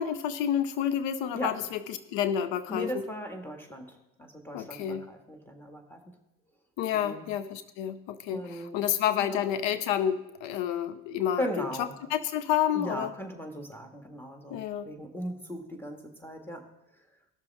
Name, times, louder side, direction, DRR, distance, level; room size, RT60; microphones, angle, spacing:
voice 1, 0.0-2.9 4.5-5.1 6.8-11.7 12.1-13.1 14.5-14.9, left 10 dB, 85° left, 12 dB, 0.7 m, -29 dB
voice 2, 2.7-6.1 6.9-7.2 8.3-8.8 9.1-9.4 11.4-12.0 12.7-16.7, equal, 5° left, 3 dB, 1.9 m, -38 dB
17.5 x 6.7 x 3.5 m, 0.89 s
supercardioid pair, 75°, 43 cm